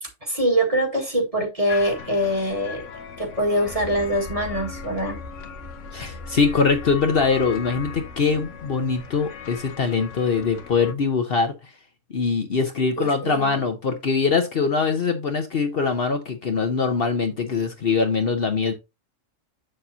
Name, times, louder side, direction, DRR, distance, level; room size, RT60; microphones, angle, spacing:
voice 1, 0.0-2.8 3.2-5.2 13.0-13.6, equal, 25° right, 1.8 m, -24 dB
sound 1, 1.7-10.9, left 6 dB, 70° left, 1.3 m, -39 dB
sound 2, 3.6-9.8, left 2 dB, 85° right, 2.4 m, -41 dB
voice 2, 5.9-11.5 12.1-18.7, left 5 dB, 50° left, 1.0 m, -22 dB
7.5 x 6.7 x 2.7 m
omnidirectional pair, 1.3 m